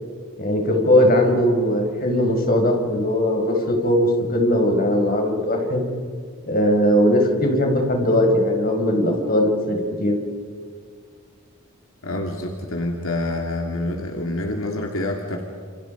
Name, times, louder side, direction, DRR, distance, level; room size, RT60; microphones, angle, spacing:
voice 1, 0.4-5.8 6.5-10.1, left 1 dB, 40° left, 2 dB, 5.0 m, -19 dB
voice 2, 12.0-15.4, left 1 dB, 70° left, 2 dB, 2.7 m, -27 dB
30.0 x 28.5 x 5.3 m, 2.1 s
head